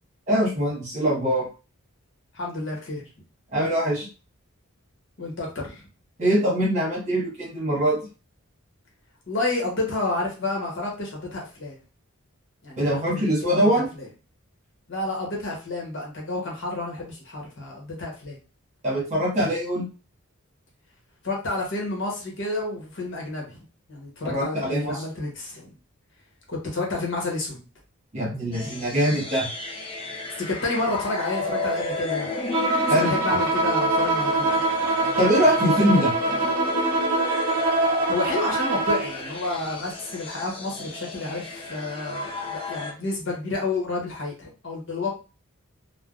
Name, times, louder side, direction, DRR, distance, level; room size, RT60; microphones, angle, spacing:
voice 1, 0.3-1.5 3.5-4.1 6.2-8.0 12.8-13.8 18.8-19.9 24.2-25.0 28.1-29.5 32.9-33.1 35.2-36.1, equal, 30° right, -5 dB, 1.3 m, -23 dB
voice 2, 2.3-3.1 5.2-5.8 9.3-11.8 12.6-14.1 14.9-18.4 21.2-23.6 23.9-25.7 26.5-27.6 30.4-32.3 32.9-34.5 38.1-45.1, left 2 dB, 55° left, -2 dB, 1.0 m, -30 dB
sound 1, 28.5-42.9, left 2 dB, 25° left, 0.5 m, -32 dB
Bowed string instrument, 32.5-39.2, right 2 dB, 85° right, 0.6 m, -24 dB
3.2 x 2.2 x 2.4 m, 0.33 s
head